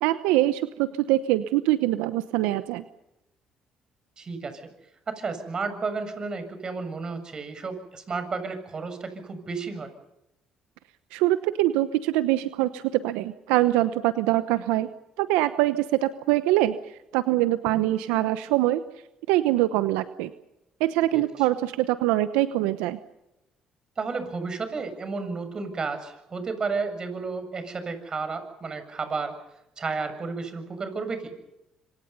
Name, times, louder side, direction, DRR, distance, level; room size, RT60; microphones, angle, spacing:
voice 1, 0.0-2.8 11.1-14.9 15.2-18.8 19.3-20.3 20.8-23.0, right 15 dB, 85° right, 12 dB, 0.9 m, -24 dB
voice 2, 4.2-4.6 5.1-9.9 17.7-17.8 21.1-21.2 24.0-29.3 29.8-31.4, right 4 dB, 40° right, 9 dB, 7.1 m, -32 dB
26.5 x 25.5 x 5.6 m, 0.90 s
supercardioid pair, 65°, 2 cm